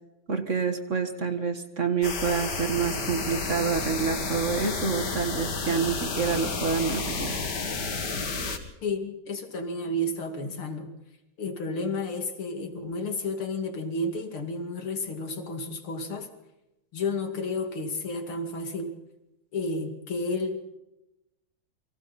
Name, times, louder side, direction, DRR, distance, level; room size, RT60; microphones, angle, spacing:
voice 1, 0.3-7.4, right 6 dB, 40° right, 7 dB, 1.8 m, -28 dB
sound 1, 2.0-8.6, left 4 dB, 55° left, 2.7 m, -31 dB
voice 2, 8.8-10.9 11.4-16.3 16.9-18.9 19.5-20.8, left 2 dB, 90° left, 5 dB, 3.3 m, -31 dB
29.0 x 24.0 x 4.2 m, 0.93 s
omnidirectional pair, 2.3 m